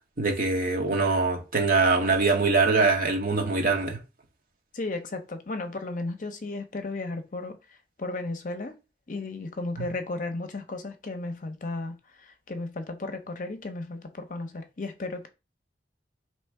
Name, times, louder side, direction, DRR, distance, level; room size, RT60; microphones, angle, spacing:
voice 1, 0.2-4.0 9.8-9.9, right 3 dB, 50° right, 1.2 m, -23 dB
voice 2, 4.7-7.6 8.0-8.8 9.1-15.3, left 2 dB, 50° left, 0.6 m, -34 dB
3.3 x 3.1 x 4.6 m
head